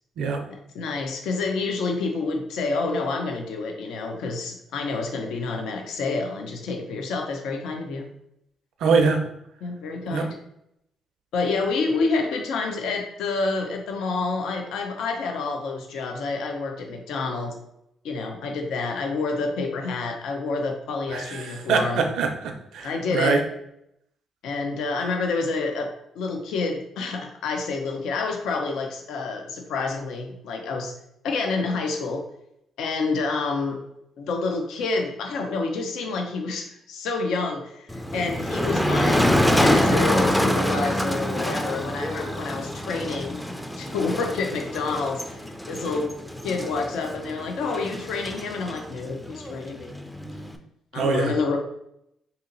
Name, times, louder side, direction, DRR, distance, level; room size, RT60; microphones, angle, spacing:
voice 1, 0.5-8.1 9.6-10.3 11.3-17.6 18.0-22.0 22.8-23.4 24.4-30.9 31.2-32.2 32.8-33.8 34.2-43.4 43.8-46.1 46.4-49.9 50.9-51.6, left 3 dB, 80° left, 3 dB, 0.6 m, -28 dB
voice 2, 8.8-9.2 10.1-10.3 21.1-23.4 50.9-51.3, right 4 dB, 75° right, 5 dB, 0.5 m, -23 dB
Motor vehicle (road), 37.9-50.6, equal, 5° left, 0.4 m, -26 dB
2.9 x 2.8 x 3.8 m, 0.78 s
cardioid pair, 90°, 0 cm